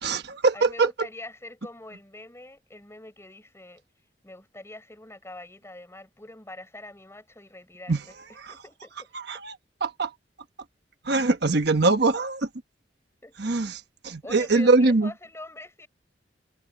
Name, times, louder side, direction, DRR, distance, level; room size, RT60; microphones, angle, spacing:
voice 1, 0.0-0.9 7.9-8.0 8.4-8.5 9.3-9.5 9.8-10.1 11.0-12.5 13.4-15.1, right 3 dB, 65° right, 1.2 m, -22 dB
voice 2, 0.5-3.8 4.2-8.1 8.5-8.9 11.8-11.9 13.2-13.3 14.2-15.9, left 1 dB, 15° left, 6.3 m, -43 dB
head